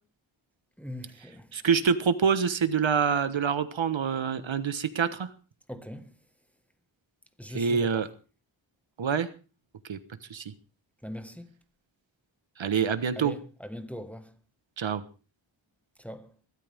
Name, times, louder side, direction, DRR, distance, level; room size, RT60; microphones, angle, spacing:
voice 1, 0.8-1.8 5.7-6.2 7.4-8.0 11.0-11.5 13.1-14.4 16.0-16.4, equal, 5° left, 1.6 m, -41 dB
voice 2, 1.5-5.3 7.5-8.1 9.0-9.3 9.9-10.0 10.3-10.5 12.6-13.3 14.8-15.0, right 6 dB, 70° right, 1.3 m, -26 dB
23.0 x 13.0 x 3.6 m
wide cardioid pair, 90°, 47 cm